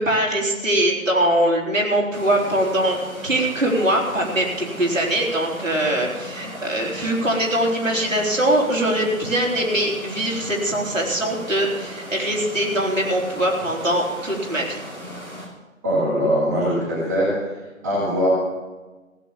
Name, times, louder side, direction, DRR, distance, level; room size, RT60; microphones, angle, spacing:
voice 1, 0.0-14.8, right 1 dB, 65° right, -1 dB, 3.8 m, -22 dB
sound 1, 2.1-15.5, equal, 90° right, 5.2 m, -37 dB
voice 2, 15.8-17.3 17.8-18.3, equal, 15° right, -8 dB, 2.3 m, -21 dB
16.0 x 8.2 x 7.0 m, 1.2 s
figure-of-eight pair, 160°, 41 cm